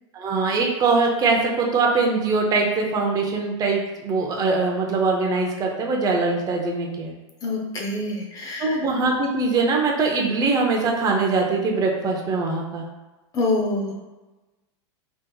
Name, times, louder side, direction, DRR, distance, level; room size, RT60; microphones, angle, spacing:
voice 1, 0.1-7.1 8.6-12.8, right 3 dB, 25° right, 1 dB, 0.6 m, -22 dB
voice 2, 7.4-8.8 13.3-14.0, left 2 dB, 25° left, -1 dB, 0.5 m, -26 dB
3.5 x 2.9 x 2.2 m, 1.1 s
supercardioid pair, 130°, 15 cm